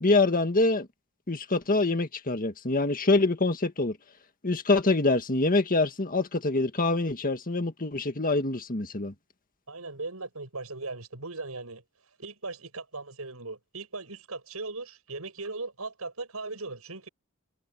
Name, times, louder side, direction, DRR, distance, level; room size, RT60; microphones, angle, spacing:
voice 1, 0.0-0.9 1.3-4.0 4.4-9.1, left 2 dB, 40° left, 1.8 m, -25 dB
voice 2, 9.7-11.8 12.2-17.1, right 3 dB, 85° right, 6.6 m, -38 dB
head